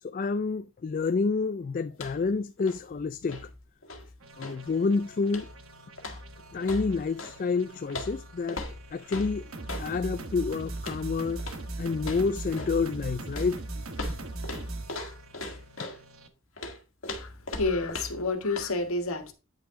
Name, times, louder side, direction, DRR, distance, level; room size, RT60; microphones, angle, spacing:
voice 1, 0.0-3.5 4.4-5.5 6.5-8.6 8.9-9.5 9.8-11.4 11.8-13.6, left 4 dB, 40° left, 0.3 m, -29 dB
sound 1, 1.9-2.3 2.6-4.7 5.3-5.6 6.0-7.4 7.9-9.9 10.8-11.1 11.4-11.7 12.0-12.8 13.3-16.0 16.6-18.3 18.6-18.7, left 2 dB, 75° left, 1.6 m, -39 dB
sound 2, 4.2-16.3, right 2 dB, 85° right, 1.3 m, -40 dB
voice 2, 17.2-19.3, left 3 dB, 90° left, 1.6 m, -30 dB
9.2 x 5.9 x 3.6 m
head